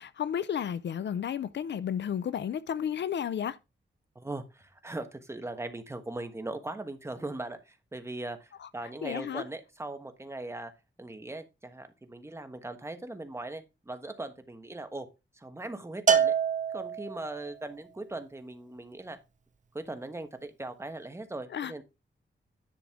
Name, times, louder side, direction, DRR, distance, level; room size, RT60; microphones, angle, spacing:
voice 1, 0.0-3.6 9.0-9.4 21.5-21.7, left 8 dB, 65° left, 0.4 m, -32 dB
voice 2, 4.1-10.7 11.0-15.1 15.3-16.3 16.7-19.2 19.7-21.8, right 2 dB, 15° right, 1.2 m, -39 dB
Bell, 16.1-17.4, right 7 dB, 40° right, 0.6 m, -26 dB
10.5 x 6.3 x 3.6 m
wide cardioid pair, 180°, 19 cm